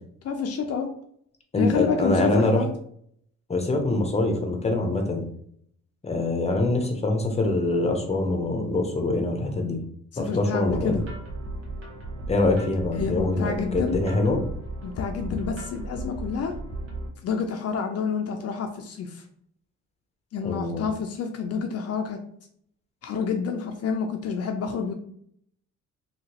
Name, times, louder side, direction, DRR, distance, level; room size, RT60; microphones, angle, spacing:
voice 1, 0.2-0.9 1.6-2.7 10.1-11.0 13.0-14.0 14.8-16.5 17.2-19.2 20.3-22.2 23.0-24.9, left 6 dB, 55° left, 4 dB, 0.5 m, -28 dB
voice 2, 1.5-2.6 3.5-5.2 6.0-9.8 10.2-11.0 12.3-14.4 20.4-20.8, left 2 dB, 20° left, 3 dB, 0.7 m, -24 dB
sound 1, 10.6-17.1, right 2 dB, 50° right, 1.2 m, -36 dB
2.9 x 2.8 x 2.8 m, 0.66 s
cardioid pair, 90°, 30 cm